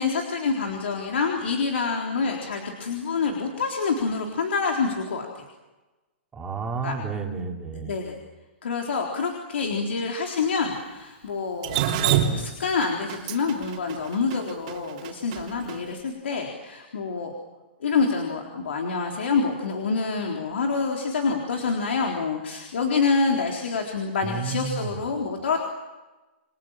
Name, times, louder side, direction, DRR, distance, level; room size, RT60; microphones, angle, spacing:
voice 1, 0.0-5.4 6.8-7.0 7.7-8.2 8.6-17.3 17.8-25.6, left 4 dB, 80° left, 1 dB, 3.9 m, -27 dB
voice 2, 6.3-8.0 24.2-25.0, right 5 dB, 10° right, 1 dB, 3.1 m, -31 dB
Drip, 11.6-15.8, right 10 dB, 40° right, 3.0 m, -26 dB
29.0 x 23.0 x 7.4 m, 1.2 s
hypercardioid pair, 160°, 6 cm